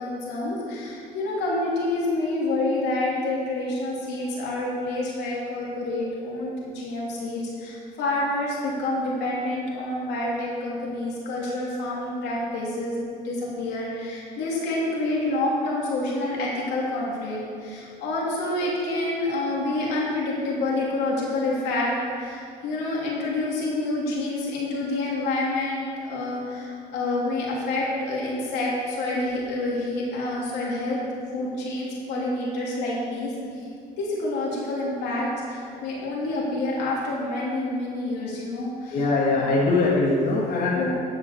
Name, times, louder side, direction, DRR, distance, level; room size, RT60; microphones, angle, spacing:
voice 1, 0.0-31.0 31.3-33.7 34.0-39.0 40.7-40.9, left 2 dB, 85° left, -4 dB, 3.1 m, -28 dB
voice 2, 38.9-40.9, left 3 dB, 55° left, -4 dB, 1.7 m, -22 dB
11.0 x 6.0 x 6.8 m, 2.4 s
cardioid pair, 110°, 17 cm